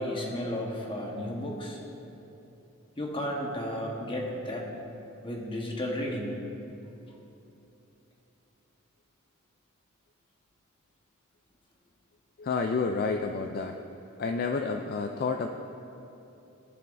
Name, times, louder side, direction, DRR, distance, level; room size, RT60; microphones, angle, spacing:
voice 1, 0.0-1.8 3.0-4.7 5.2-6.4, left 1 dB, 25° left, -1 dB, 1.2 m, -33 dB
voice 2, 12.4-13.7 14.2-15.5, left 4 dB, 45° left, 4 dB, 0.3 m, -29 dB
16.5 x 5.7 x 2.6 m, 3.0 s
head